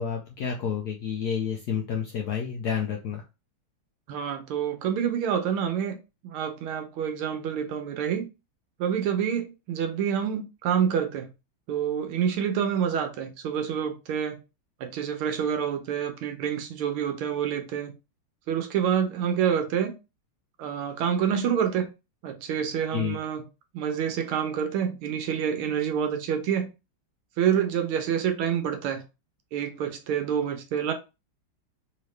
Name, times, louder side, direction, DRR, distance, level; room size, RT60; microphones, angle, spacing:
voice 1, 0.0-3.2 22.9-23.2, left 7 dB, 75° left, 0.9 m, -29 dB
voice 2, 4.1-6.0 6.2-8.3 8.8-11.3 11.7-14.4 14.8-17.9 18.5-19.9 20.6-21.9 22.2-23.4 23.7-26.7 27.4-29.0 29.5-30.9, right 8 dB, 85° right, 1.6 m, -27 dB
3.7 x 2.8 x 3.2 m
omnidirectional pair, 2.3 m